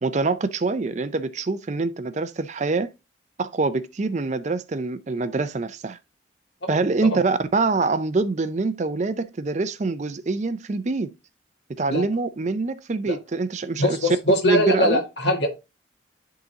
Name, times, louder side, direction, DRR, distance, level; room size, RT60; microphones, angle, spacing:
voice 1, 0.0-2.9 3.4-6.0 6.7-11.1 11.7-14.0 14.4-15.0, right 3 dB, 35° right, 0.4 m, -25 dB
voice 2, 6.6-7.2 11.9-12.0 13.1-13.2 13.8-15.5, left 1 dB, 60° left, 1.8 m, -22 dB
11.0 x 3.8 x 2.8 m
head